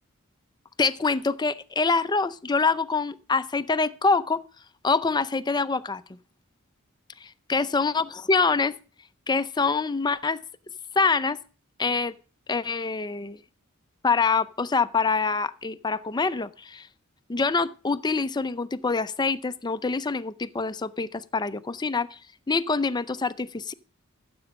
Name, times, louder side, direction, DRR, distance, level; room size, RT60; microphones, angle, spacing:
voice 1, 0.8-4.4 4.8-6.0 7.2-8.7 9.3-10.4 11.0-11.4 11.8-12.1 12.5-13.4 14.0-16.9 17.3-22.2 22.5-23.7, left 4 dB, 20° left, 0.5 m, -25 dB
14.0 x 7.8 x 5.2 m
head